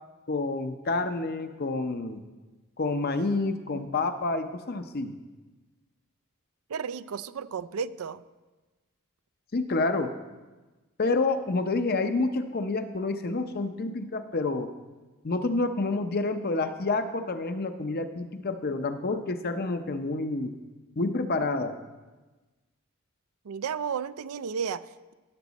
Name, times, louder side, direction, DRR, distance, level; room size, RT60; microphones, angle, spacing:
voice 1, 0.3-2.2 2.8-5.2 9.5-10.1 11.0-14.7 15.2-20.5 21.0-21.8, left 3 dB, 45° left, 9 dB, 0.7 m, -28 dB
voice 2, 6.7-8.2 23.4-25.1, right 6 dB, 85° right, 15 dB, 0.4 m, -33 dB
14.0 x 8.0 x 4.1 m, 1.2 s
head